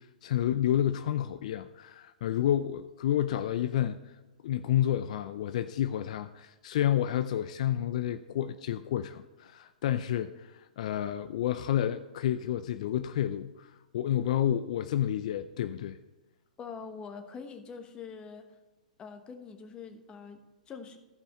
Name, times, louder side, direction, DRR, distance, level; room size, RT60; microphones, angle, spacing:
voice 1, 0.0-4.2 4.4-16.0, left 11 dB, 60° left, 0.4 m, -30 dB
voice 2, 16.6-18.5 19.0-21.0, left 5 dB, 25° left, 1.2 m, -44 dB
14.5 x 5.6 x 4.4 m
hypercardioid pair, 120°, 4 cm